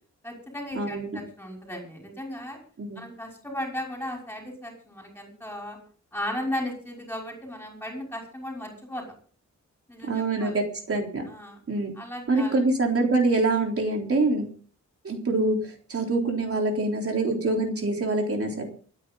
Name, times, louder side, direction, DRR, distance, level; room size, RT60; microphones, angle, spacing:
voice 1, 0.2-2.6 3.0-5.8 6.1-9.0 9.9-10.6 11.3-11.6 12.0-12.6, left 1 dB, 5° left, 0 dB, 5.9 m, -36 dB
voice 2, 0.7-1.2 2.8-3.0 10.0-11.3 11.7-11.9 12.3-14.5 15.0-18.7, right 2 dB, 50° right, 2 dB, 3.7 m, -25 dB
27.0 x 9.8 x 3.9 m, 0.43 s
wide cardioid pair, 180°, 29 cm